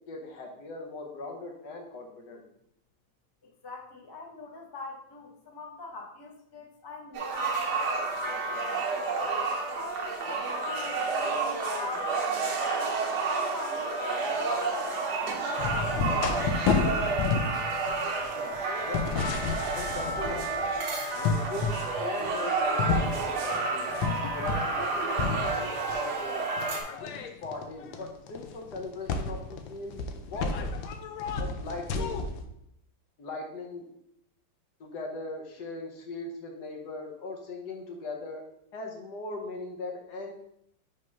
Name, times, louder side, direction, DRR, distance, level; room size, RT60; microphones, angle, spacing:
voice 1, 0.1-2.4 18.3-19.1 19.7-20.5 21.1-23.9 24.3-26.4 27.0-30.7 31.4-32.2 33.2-33.9 34.8-38.4 38.7-40.3, left 3 dB, 60° left, 1 dB, 1.5 m, -39 dB
voice 2, 3.4-9.1 9.7-12.1 13.3-16.5, left 3 dB, 30° left, -1 dB, 0.4 m, -43 dB
sound 1, 7.1-26.8, right 3 dB, 60° right, 1.4 m, -30 dB
sound 2, 15.6-20.8 21.2-21.8 22.2-24.9 25.2-26.0 26.6-32.4, left 4 dB, 80° left, 1.4 m, -31 dB
5.4 x 3.5 x 5.3 m, 0.76 s
omnidirectional pair, 2.1 m